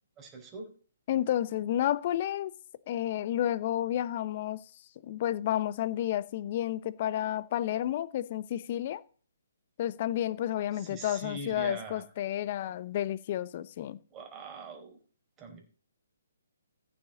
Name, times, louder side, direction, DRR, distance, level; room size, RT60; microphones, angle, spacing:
voice 1, 0.2-0.7 10.7-12.1 14.1-15.0 15.4-15.6, right 3 dB, 20° right, 4.6 m, -42 dB
voice 2, 1.1-2.5 2.9-4.6 5.0-9.0 9.8-14.0, left 12 dB, 40° left, 0.9 m, -31 dB
14.5 x 7.3 x 6.3 m
figure-of-eight pair, 135°, 0 cm